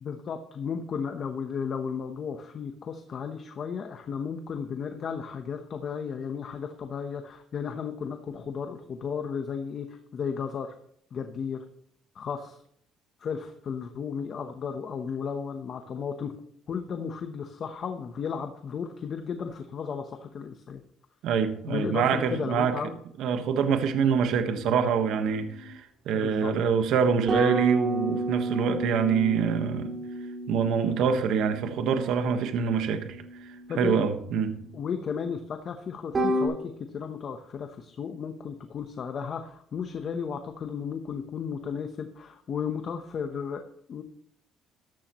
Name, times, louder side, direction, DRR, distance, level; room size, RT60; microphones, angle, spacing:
voice 1, 0.0-10.7 11.1-11.6 12.1-12.6 13.2-16.3 16.7-20.8 21.7-23.0 23.6-23.7 26.1-26.5 33.7-34.1 34.7-44.0, left 6 dB, 45° left, 1.0 m, -34 dB
voice 2, 21.2-22.7 23.2-29.9 30.5-34.5, right 6 dB, 70° right, 1.3 m, -25 dB
sound 1, 27.3-34.4 36.1-36.5, right 1 dB, 30° right, 4.4 m, -32 dB
14.0 x 11.5 x 3.1 m
cardioid pair, 130°, 0 cm